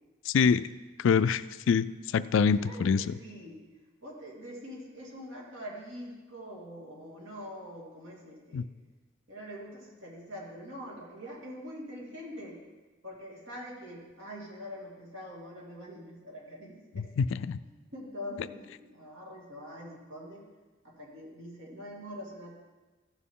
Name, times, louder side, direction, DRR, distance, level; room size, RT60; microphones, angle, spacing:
voice 1, 0.3-0.6 1.0-1.9 2.1-3.0 8.5-8.6 17.2-17.6, left 6 dB, 75° left, 16 dB, 0.3 m, -25 dB
voice 2, 2.5-3.6 4.0-8.6 9.3-12.6 13.0-17.1 17.6-20.5 20.8-22.5, equal, 80° right, -3 dB, 2.6 m, -44 dB
15.0 x 6.2 x 3.7 m, 1.2 s
head